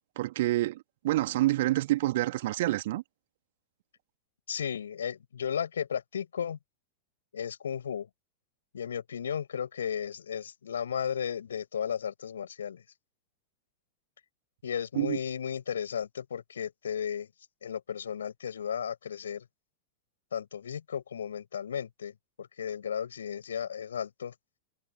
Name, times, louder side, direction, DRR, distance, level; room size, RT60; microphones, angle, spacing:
voice 1, 0.2-3.0 14.9-15.2, right 16 dB, 55° right, 2.3 m, -27 dB
voice 2, 4.5-6.6 7.3-8.1 8.7-12.8 14.6-17.3 17.6-19.4 20.3-24.3, left 8 dB, 65° left, 7.4 m, -34 dB
figure-of-eight pair, 90°, 0 cm